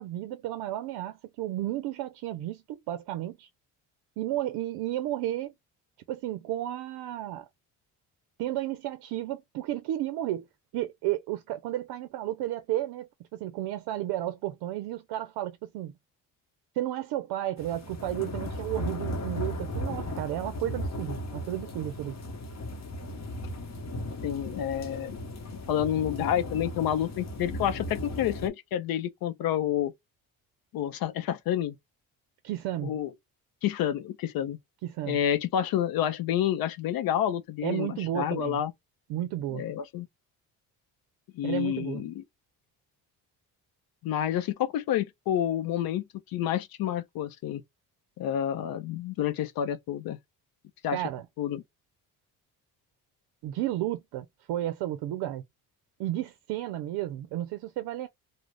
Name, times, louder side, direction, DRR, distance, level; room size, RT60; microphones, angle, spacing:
voice 1, 0.0-3.5 4.2-5.5 6.1-7.5 8.4-10.5 10.7-15.9 16.7-22.2 32.4-32.9 34.8-35.2 37.6-38.6 39.1-39.7 41.4-42.1 50.9-51.3 53.4-55.4 56.0-58.1, right 13 dB, 75° right, 0.5 m, -33 dB
sound 1, 17.6-28.5, left 1 dB, 45° left, 0.9 m, -36 dB
voice 2, 24.2-25.2 25.7-29.9 30.7-31.7 32.8-33.1 33.6-34.6 35.0-38.7 39.5-40.1 41.3-42.2 44.0-47.6 48.2-50.2 50.8-51.0 51.4-51.6, left 10 dB, 65° left, 0.5 m, -29 dB
2.4 x 2.1 x 3.2 m
supercardioid pair, 75°, 38 cm